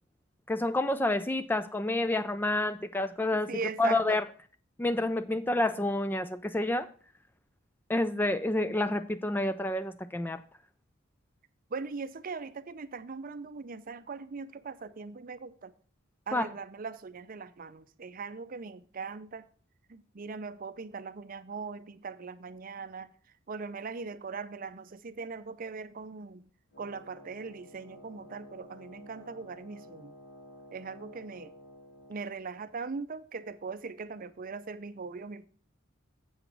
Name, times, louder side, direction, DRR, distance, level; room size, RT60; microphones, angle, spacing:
voice 1, 0.5-3.5 3.8-4.2 4.8-6.9 7.9-10.4 16.3-16.5, left 2 dB, 10° left, 0.3 m, -29 dB
voice 2, 3.3-4.2 11.7-15.7 16.3-19.5 19.9-23.1 23.5-26.5 26.8-30.1 30.7-31.5 32.1-35.4, right 4 dB, 40° right, 0.5 m, -40 dB
Wind instrument woodwind instrument, 26.7-32.4, equal, 65° left, 5.0 m, -52 dB
7.8 x 6.1 x 5.9 m
head